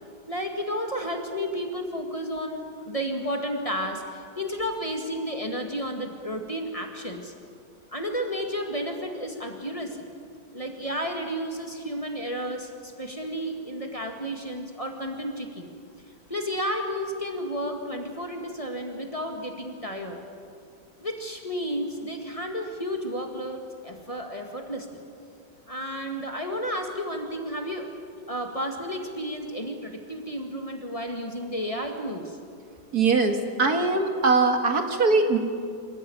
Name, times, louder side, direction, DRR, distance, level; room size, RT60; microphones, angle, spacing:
voice 1, 0.3-7.3 7.9-10.1 10.5-15.7 16.3-20.2 21.0-25.0 25.7-27.9 28.3-32.4, equal, 20° left, 3 dB, 1.9 m, -32 dB
voice 2, 32.9-35.4, right 3 dB, 65° right, 5 dB, 2.2 m, -21 dB
26.0 x 14.5 x 9.4 m, 2.3 s
omnidirectional pair, 1.8 m